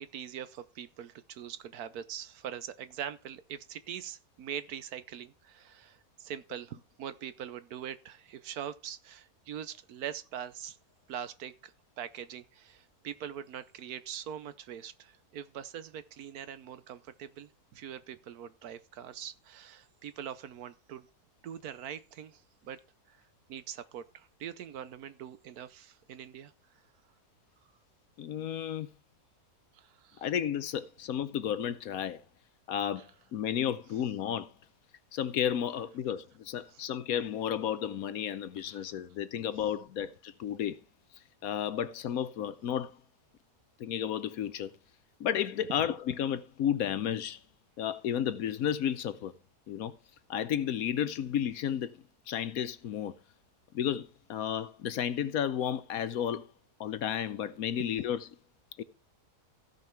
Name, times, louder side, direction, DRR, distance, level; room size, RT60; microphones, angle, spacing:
voice 1, 0.0-10.8 11.1-21.1 21.4-22.8 23.1-23.2 23.5-26.5 29.7-30.3 33.0-33.1 36.7-36.8 38.7-38.9, right 9 dB, 70° right, 1.3 m, -43 dB
voice 2, 28.2-28.9 30.2-32.2 32.7-34.5 35.1-40.8 41.4-42.9 43.8-44.7 45.2-47.4 47.8-49.3 49.7-50.0 50.3-51.9 52.3-53.1 53.7-56.5 56.8-58.2 58.8-58.9, left 9 dB, 70° left, 1.1 m, -32 dB
15.5 x 5.5 x 4.6 m
omnidirectional pair, 1.7 m